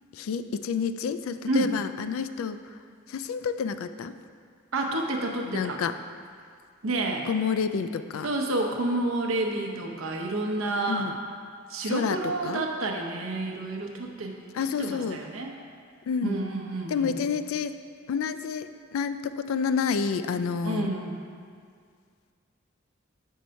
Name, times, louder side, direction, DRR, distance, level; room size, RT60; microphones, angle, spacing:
voice 1, 0.1-2.6 3.1-4.1 5.5-5.9 7.3-8.3 10.9-11.2 11.8-12.6 14.5-15.2 16.1-16.4 16.9-17.7 18.1-20.9, left 6 dB, 85° left, 11 dB, 0.3 m, -29 dB
voice 2, 4.7-5.8 6.8-7.3 8.2-11.1 11.7-14.4 14.8-15.5 16.2-17.1 20.6-21.2, right 2 dB, 80° right, 1 dB, 0.8 m, -29 dB
5.6 x 4.6 x 5.2 m, 2.1 s
head